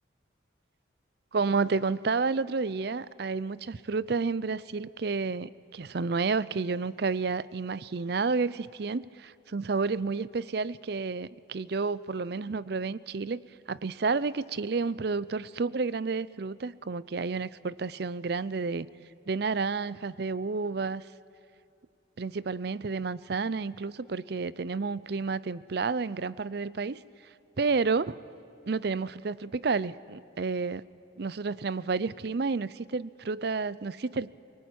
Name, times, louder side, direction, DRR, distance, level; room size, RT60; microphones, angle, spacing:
voice 1, 1.3-13.4 13.7-18.9 19.3-21.0 22.2-27.0 27.6-28.2 28.7-30.8 31.2-34.3, right 4 dB, 55° right, 19 dB, 0.5 m, -30 dB
24.0 x 19.0 x 9.3 m, 2.7 s
head